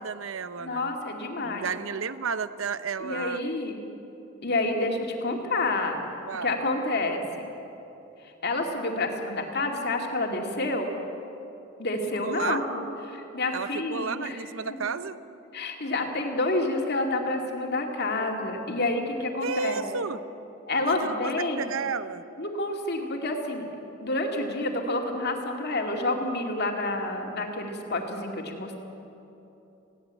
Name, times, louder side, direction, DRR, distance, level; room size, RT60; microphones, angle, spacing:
voice 1, 0.0-0.9 1.4-3.4 6.3-6.6 12.2-12.6 13.5-15.2 19.4-20.2 20.9-22.2, right 5 dB, 75° right, 13 dB, 0.8 m, -32 dB
voice 2, 0.6-1.7 3.0-3.8 4.4-6.1 6.4-7.5 8.2-10.9 11.8-14.4 14.7-14.8 15.5-19.9 20.7-21.7 22.4-23.7 24.0-28.8, left 2 dB, 55° left, 2 dB, 2.5 m, -29 dB
20.5 x 17.0 x 8.3 m, 3.0 s
head